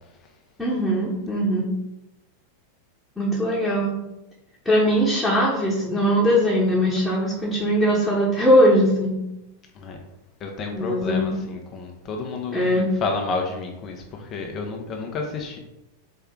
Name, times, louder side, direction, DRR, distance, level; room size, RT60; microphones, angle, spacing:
voice 1, 0.6-1.7 3.2-4.0 4.6-9.2 10.7-11.5 12.5-12.9, equal, 5° left, -7 dB, 1.1 m, -20 dB
voice 2, 10.4-15.6, left 3 dB, 30° left, 2 dB, 0.7 m, -30 dB
4.3 x 3.3 x 3.7 m, 0.90 s
figure-of-eight pair, 90°, 0 cm